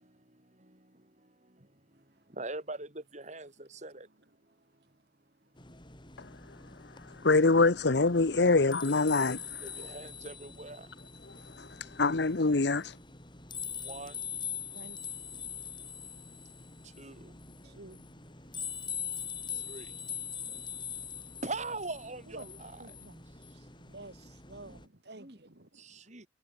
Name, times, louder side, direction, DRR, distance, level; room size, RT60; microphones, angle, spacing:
voice 1, 2.3-4.1 9.6-10.9 13.8-14.2 17.0-17.3 19.7-19.9 21.4-22.9 25.2-25.4 25.8-26.3, right 2 dB, 40° right, 5.5 m, -41 dB
sound 1, 5.6-24.9, left 7 dB, 25° left, 4.8 m, -43 dB
voice 2, 7.2-9.4 12.0-12.9, left 3 dB, 65° left, 1.0 m, -24 dB
voice 3, 17.6-18.0 19.5-19.6 22.3-22.5 22.8-23.2 23.5-26.0, right 2 dB, 65° right, 3.2 m, -51 dB
head